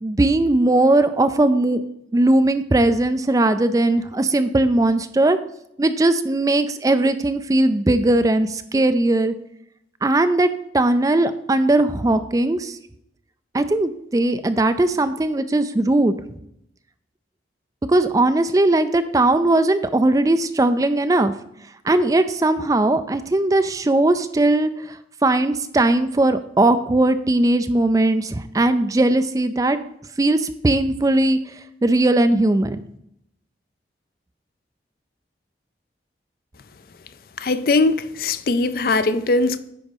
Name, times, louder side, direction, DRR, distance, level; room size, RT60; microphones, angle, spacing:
voice 1, 0.0-1.8 2.1-5.4 5.8-9.3 10.0-10.5 10.7-12.8 13.5-16.2 17.9-21.3 21.8-29.8 30.2-31.4 31.8-32.8, right 2 dB, 20° right, 0.3 m, -19 dB
voice 2, 37.4-39.6, left 3 dB, 55° left, 0.4 m, -20 dB
10.0 x 4.1 x 5.4 m
head